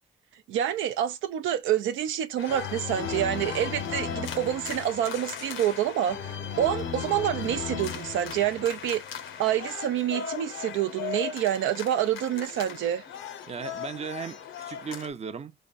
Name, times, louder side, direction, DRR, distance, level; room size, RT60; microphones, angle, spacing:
voice 1, 0.5-9.0 9.4-13.0, right 11 dB, 85° right, 0.4 m, -27 dB
sound 1, 2.4-15.1, left 7 dB, 75° left, 0.7 m, -36 dB
voice 2, 13.5-15.5, right 6 dB, 35° right, 0.5 m, -36 dB
4.1 x 2.5 x 2.3 m
supercardioid pair, 65°, 20 cm